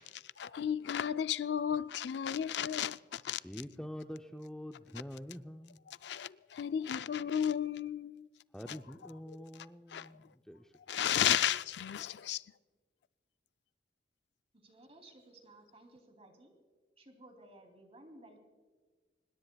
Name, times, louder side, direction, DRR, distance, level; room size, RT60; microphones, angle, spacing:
voice 1, 0.0-3.4 5.9-8.3 8.7-8.8 9.3-9.4 9.9-10.1 10.9-12.4, left 9 dB, 70° left, 0.4 m, -33 dB
voice 2, 3.4-5.8 8.5-10.7, equal, 5° left, 0.5 m, -46 dB
voice 3, 14.5-16.5 17.0-18.4, right 1 dB, 35° right, 2.8 m, -57 dB
25.5 x 20.5 x 2.3 m
head